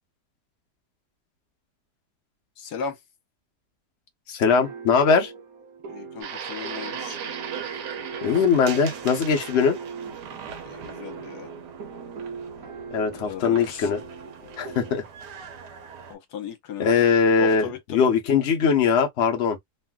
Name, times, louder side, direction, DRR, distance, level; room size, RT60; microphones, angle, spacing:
voice 1, 2.6-3.0 5.9-7.2 10.6-11.5 13.1-13.9 16.1-17.0 17.4-18.1, left 7 dB, 75° left, 1.4 m, -36 dB
voice 2, 4.3-5.3 7.7-7.8 8.2-9.8 12.9-14.0 14.6-15.0 16.8-19.6, left 6 dB, 50° left, 1.0 m, -21 dB
sound 1, 4.4-14.9, right 5 dB, 60° right, 1.4 m, -40 dB
sound 2, 6.2-16.1, right 7 dB, 85° right, 1.3 m, -39 dB
3.2 x 2.6 x 2.2 m
omnidirectional pair, 1.8 m